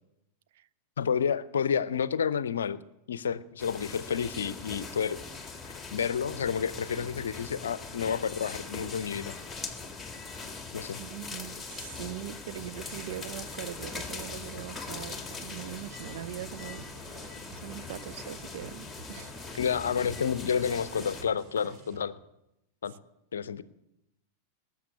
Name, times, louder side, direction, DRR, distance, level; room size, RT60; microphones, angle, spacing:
voice 1, 1.0-2.8 3.1-5.2 5.9-9.3 10.7-11.0 19.6-22.2 22.8-23.0 23.3-23.6, left 7 dB, 65° left, 18 dB, 0.6 m, -30 dB
sound 1, 3.6-21.2, left 4 dB, 10° left, 1.9 m, -41 dB
voice 2, 11.0-17.2 17.6-19.5, right 12 dB, 55° right, 13 dB, 0.6 m, -42 dB
sound 2, 12.8-22.0, right 5 dB, 35° right, 1.7 m, -49 dB
19.5 x 7.3 x 8.4 m, 0.87 s
figure-of-eight pair, 90°, 0 cm